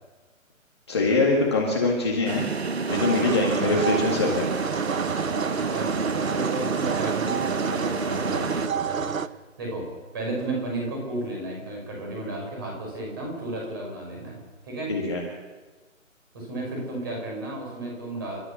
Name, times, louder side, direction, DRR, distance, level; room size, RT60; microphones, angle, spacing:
voice 1, 0.9-2.4 2.9-4.5 14.9-15.2, left 3 dB, 20° left, -3 dB, 1.9 m, -23 dB
sound 1, 2.3-8.7, right 4 dB, 50° right, 1.2 m, -30 dB
sound 2, 2.9-9.3, right 6 dB, 75° right, 1.2 m, -29 dB
voice 2, 5.6-9.9 10.1-14.9 16.3-18.4, right 2 dB, 15° right, -1 dB, 5.4 m, -33 dB
29.0 x 13.5 x 6.9 m, 1.3 s
hypercardioid pair, 180°, 40 cm